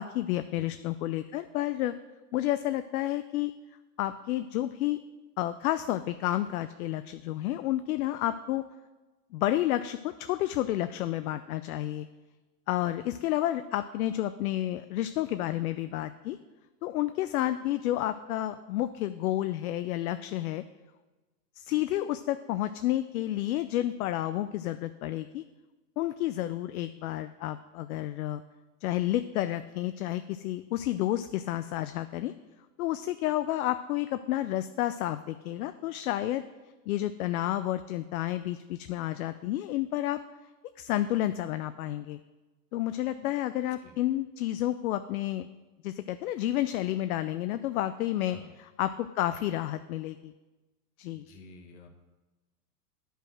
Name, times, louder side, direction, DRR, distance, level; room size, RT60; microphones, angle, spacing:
voice 1, 0.0-1.9 2.3-3.5 4.0-5.0 5.4-8.6 9.3-12.1 12.7-16.4 16.8-20.6 21.6-25.4 26.0-28.4 28.8-32.3 32.8-36.4 36.9-40.2 40.8-42.2 42.7-45.5 45.8-48.4 48.8-50.3 51.0-51.3, left 14 dB, 60° left, 11 dB, 0.5 m, -30 dB
voice 2, 51.1-51.9, left 3 dB, 45° left, 4 dB, 1.6 m, -50 dB
9.6 x 5.4 x 6.2 m, 1.2 s
hypercardioid pair, 135°, 49 cm